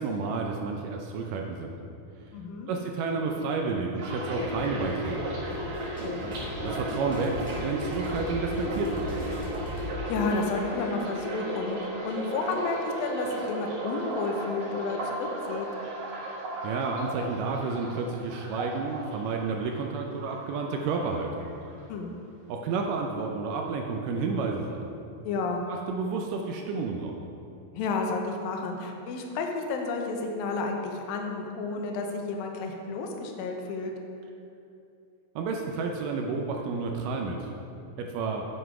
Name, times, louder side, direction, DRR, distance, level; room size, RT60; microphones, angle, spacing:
voice 1, 0.0-1.7 2.7-5.4 6.6-9.1 16.6-21.5 22.5-24.8 25.7-27.2 35.4-37.5 38.0-38.5, right 4 dB, 80° right, 2 dB, 2.0 m, -31 dB
voice 2, 2.3-2.7 6.0-6.3 9.8-15.7 21.9-22.1 25.2-25.6 27.8-33.9, left 3 dB, 75° left, 2 dB, 2.5 m, -31 dB
sound 1, 4.0-19.9 20.2-21.1 21.4-21.8, right 1 dB, 60° right, 2.5 m, -35 dB
sound 2, 4.3-10.0, left 1 dB, 10° left, 0.4 m, -38 dB
7.9 x 7.9 x 4.7 m, 2.6 s
omnidirectional pair, 4.3 m